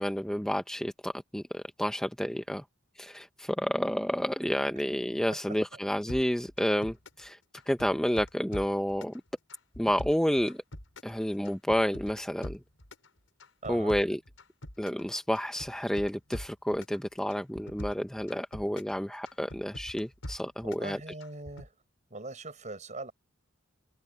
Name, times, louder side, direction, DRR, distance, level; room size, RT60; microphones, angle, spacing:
voice 1, 0.0-2.6 3.0-7.4 7.7-9.1 9.8-10.6 11.0-12.6 13.7-14.2 14.8-21.0, equal, 5° left, 0.6 m, -30 dB
sound 1, 6.1-7.3 7.5-9.2 9.5-11.2 11.4-13.1 13.4-15.1 15.4-17.0 17.3-19.0 19.3-20.9 21.2-21.7, equal, 90° left, 6.5 m, -43 dB
voice 2, 13.6-14.0 20.6-21.7 22.1-23.1, right 2 dB, 40° right, 5.4 m, -41 dB
head